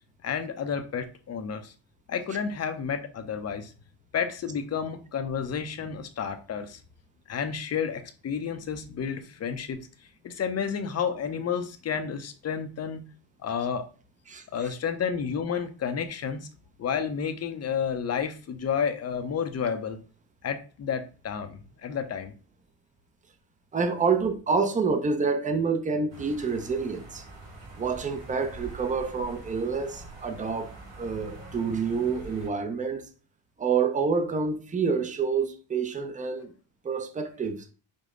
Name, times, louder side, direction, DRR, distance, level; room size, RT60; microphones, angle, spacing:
voice 1, 0.2-1.7 2.1-3.7 4.1-6.8 7.3-9.9 10.2-13.0 13.4-13.8 14.5-16.5 16.8-20.0 20.4-22.3, left 7 dB, 35° left, 0.6 m, -31 dB
voice 2, 23.7-27.2 27.8-30.7 31.0-33.0 33.6-36.5 36.8-37.6, right 5 dB, 15° right, 0.5 m, -27 dB
sound 1, 26.1-32.5, right 2 dB, 70° right, 2.2 m, -45 dB
5.2 x 2.1 x 3.7 m
cardioid pair, 110°, 47 cm